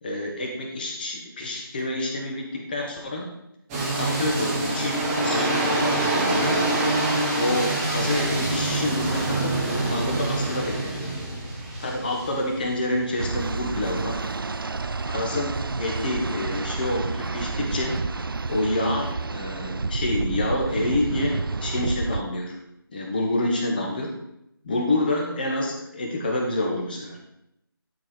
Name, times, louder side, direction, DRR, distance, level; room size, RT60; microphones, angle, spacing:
voice 1, 0.0-3.3 3.9-5.0 5.2-6.6 7.4-9.5 9.9-11.1 11.8-14.2 15.1-18.0 18.5-22.6 22.9-24.1 24.6-27.2, left 1 dB, 20° left, 1 dB, 1.3 m, -28 dB
sound 1, 3.7-13.5, right 2 dB, 5° right, 0.7 m, -26 dB
sound 2, 13.2-22.2, right 4 dB, 65° right, 0.5 m, -29 dB
11.0 x 4.8 x 5.2 m, 0.82 s
figure-of-eight pair, 165°, 13 cm